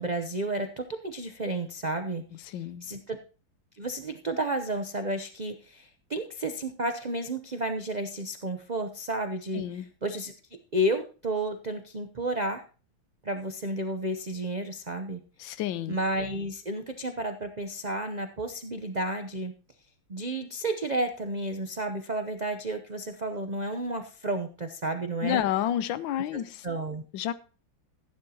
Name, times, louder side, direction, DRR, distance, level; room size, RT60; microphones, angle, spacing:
voice 1, 0.0-2.2 2.5-3.2 3.8-10.3 10.7-12.6 13.2-15.2 15.9-19.5 20.1-25.4 26.3-27.0, right 1 dB, 85° right, 7 dB, 0.3 m, -32 dB
voice 2, 2.5-2.9 9.5-9.9 15.4-16.0 25.2-26.7 27.1-27.3, left 11 dB, 85° left, 14 dB, 1.4 m, -30 dB
15.0 x 9.9 x 2.9 m, 0.36 s
omnidirectional pair, 2.1 m